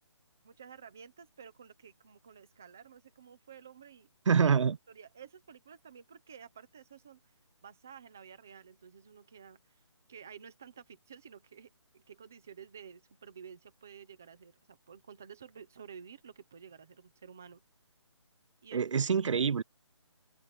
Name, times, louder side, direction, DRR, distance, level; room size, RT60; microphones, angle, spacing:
voice 1, 0.4-4.4 4.9-7.3 7.6-9.8 10.1-17.6 18.6-18.8, right 7 dB, 5° right, 0.5 m, -52 dB
voice 2, 4.3-4.8 18.7-19.6, right 6 dB, 85° right, 0.4 m, -26 dB
hypercardioid pair, 180°, 16 cm